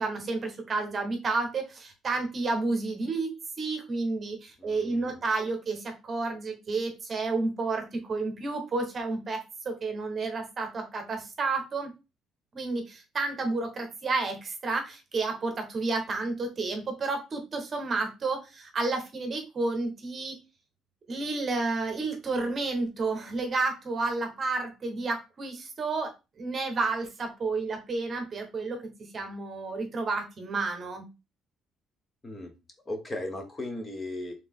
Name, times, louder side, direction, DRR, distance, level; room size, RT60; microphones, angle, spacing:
voice 1, 0.0-11.9 12.5-20.3 21.1-26.1 26.4-31.1, right 3 dB, 25° right, 4 dB, 1.1 m, -31 dB
voice 2, 4.6-5.2 32.2-32.5 32.9-34.3, left 1 dB, 15° left, 5 dB, 0.9 m, -37 dB
4.1 x 3.6 x 3.6 m, 0.27 s
cardioid pair, 180°, 0 cm